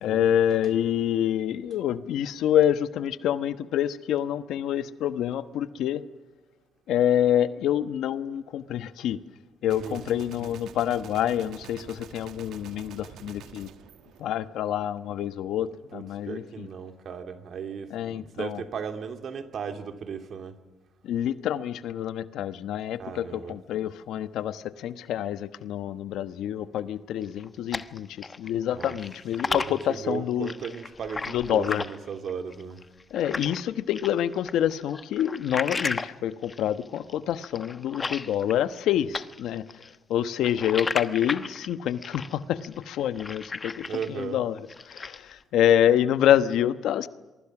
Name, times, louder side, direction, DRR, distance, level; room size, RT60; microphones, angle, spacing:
voice 1, 0.0-6.0 6.9-9.2 9.6-13.7 14.2-16.7 17.9-18.6 21.0-30.5 31.3-31.8 33.1-39.6 40.1-44.6 44.9-47.1, left 10 dB, 80° left, 1.1 m, -27 dB
voice 2, 9.7-10.1 15.9-20.6 23.0-23.6 28.7-32.8 43.8-44.4, right 6 dB, 60° right, 2.8 m, -36 dB
Gunshot gunfire, 9.7-14.9, right 9 dB, 80° right, 1.4 m, -47 dB
sound 1, 27.2-28.5 28.8-33.6 33.9-38.8 39.1-44.2 44.6-45.3, left 4 dB, 30° left, 1.1 m, -35 dB
28.0 x 23.5 x 6.1 m
cardioid pair, 90°, 0 cm